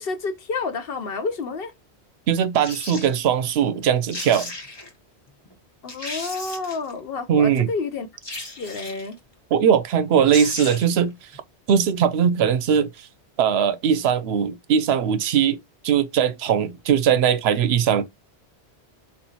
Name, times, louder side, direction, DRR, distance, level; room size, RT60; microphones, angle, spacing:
voice 1, 0.0-1.7 5.8-8.1 8.6-9.2, left 4 dB, 60° left, 0.9 m, -29 dB
voice 2, 2.3-4.5 7.3-7.7 9.5-11.3 11.7-13.1 13.4-18.0, right 8 dB, 70° right, 0.8 m, -20 dB
sound 1, 2.6-3.1 3.8-3.9 4.1-4.9 5.5-5.6 5.9-6.9 8.2-9.1 10.0-10.1 10.3-11.0 11.3-11.4, left 2 dB, 25° left, 0.9 m, -35 dB
4.4 x 3.7 x 2.7 m
omnidirectional pair, 1.1 m